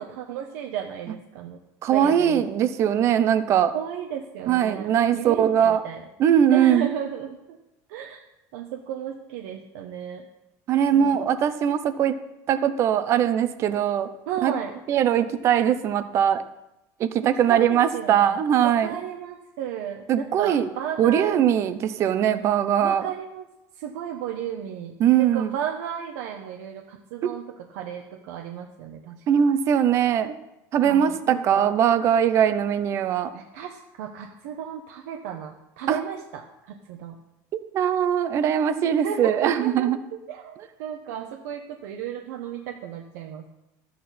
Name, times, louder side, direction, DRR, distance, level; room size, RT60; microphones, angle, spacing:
voice 1, 0.0-1.6 1.9-2.4 3.7-4.9 5.1-6.0 6.5-7.6 7.9-8.2 8.5-10.3 10.9-11.2 14.3-14.7 17.2-21.4 22.8-23.5 23.8-29.2 30.8-31.8 33.3-37.2 38.9-40.0 40.3-43.5, right 9 dB, 80° right, 3 dB, 1.0 m, -34 dB
voice 2, 1.8-3.7 4.5-5.8 6.2-6.9 10.7-12.2 12.5-14.1 14.4-14.5 14.9-16.4 17.0-19.0 20.1-20.7 21.0-23.1 25.0-25.5 27.2-27.3 29.3-30.3 30.7-33.3 35.9-36.0 37.5-40.0, right 9 dB, 30° right, 12 dB, 0.6 m, -21 dB
13.0 x 8.6 x 4.2 m, 0.91 s
cardioid pair, 170°, 9 cm